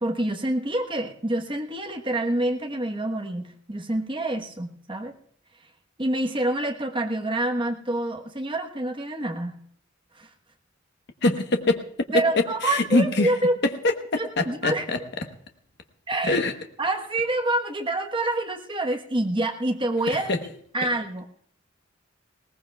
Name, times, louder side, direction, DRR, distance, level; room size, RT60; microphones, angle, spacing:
voice 1, 0.0-5.1 6.0-9.6 10.1-10.3 12.1-13.6 14.2-14.9 16.1-16.4 16.8-20.3 20.7-21.2, right 1 dB, 25° right, 2 dB, 1.1 m, -27 dB
voice 2, 11.2-11.8 12.6-13.3 13.8-15.0 16.2-16.5 20.3-20.4, left 2 dB, 55° left, 6 dB, 1.0 m, -23 dB
20.0 x 18.5 x 2.3 m, 0.63 s
head